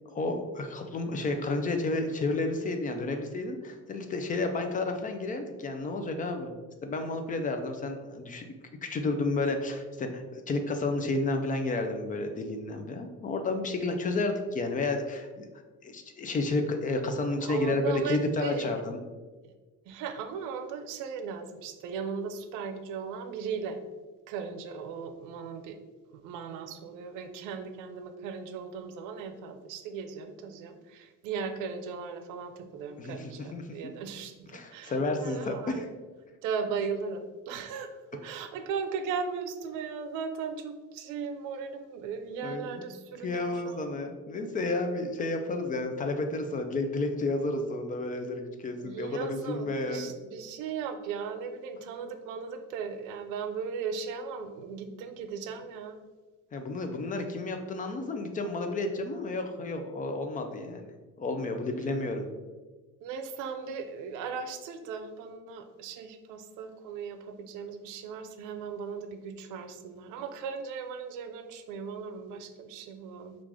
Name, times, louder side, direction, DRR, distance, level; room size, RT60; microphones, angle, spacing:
voice 1, 0.1-6.5 6.8-15.5 15.8-19.0 33.0-33.6 34.5-35.9 42.4-42.9 43.2-50.1 56.5-60.9 61.2-62.2, left 2 dB, 25° left, 6 dB, 0.4 m, -31 dB
voice 2, 17.4-18.7 19.4-19.5 19.9-23.8 24.3-25.8 26.1-35.9 36.4-43.9 48.8-56.0 63.0-73.4, right 6 dB, 90° right, 7 dB, 0.5 m, -37 dB
4.7 x 2.4 x 3.6 m, 1.3 s
cardioid pair, 140°, 30 cm